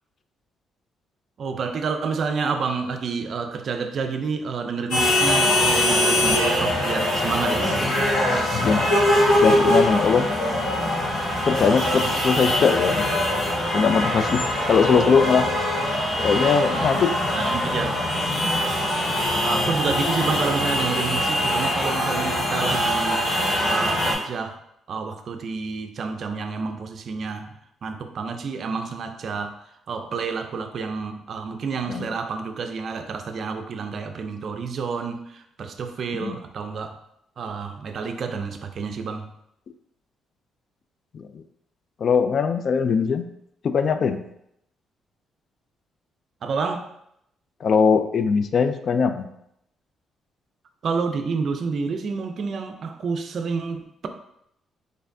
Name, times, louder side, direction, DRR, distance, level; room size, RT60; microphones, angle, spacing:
voice 1, 1.4-7.9 17.3-18.0 19.4-24.6 24.9-29.6 29.9-37.0 37.4-39.3 46.4-46.9 50.8-54.1, right 5 dB, 55° right, 6 dB, 0.4 m, -29 dB
sound 1, 4.9-24.1, left 1 dB, 70° left, 1.5 m, -22 dB
voice 2, 8.5-8.9 9.4-10.3 11.4-13.1 13.7-14.4 14.7-15.5 16.2-17.1 31.9-32.1 36.2-36.4 41.1-41.4 42.0-43.2 43.6-44.2 47.6-49.3, left 6 dB, 55° left, 9 dB, 0.3 m, -20 dB
4.2 x 3.2 x 2.7 m, 0.77 s
cardioid pair, 90°, 0 cm